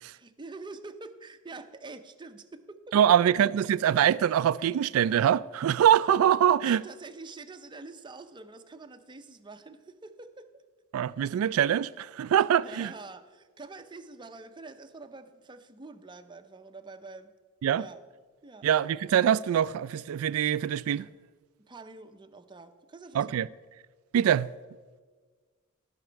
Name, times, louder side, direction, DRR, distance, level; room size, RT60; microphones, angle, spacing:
voice 1, 0.1-3.0 6.6-10.5 12.6-17.3 17.7-18.0 18.4-18.7 21.7-23.5, right 3 dB, 20° right, 0.6 m, -46 dB
voice 2, 2.9-6.8 10.9-12.9 17.6-17.9 18.6-21.1 23.1-23.5 24.1-24.5, right 9 dB, 85° right, 0.3 m, -24 dB
17.5 x 6.0 x 4.5 m
head